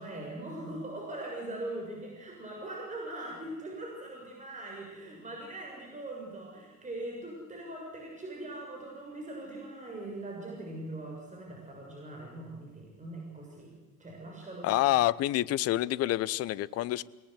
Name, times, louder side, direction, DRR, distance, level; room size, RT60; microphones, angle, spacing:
voice 1, 0.0-13.7 14.0-14.9, right 1 dB, 15° right, -1 dB, 6.9 m, -41 dB
voice 2, 14.6-17.0, left 15 dB, 35° left, 21 dB, 0.7 m, -27 dB
27.5 x 19.0 x 8.1 m, 1.2 s
figure-of-eight pair, 75°, 46 cm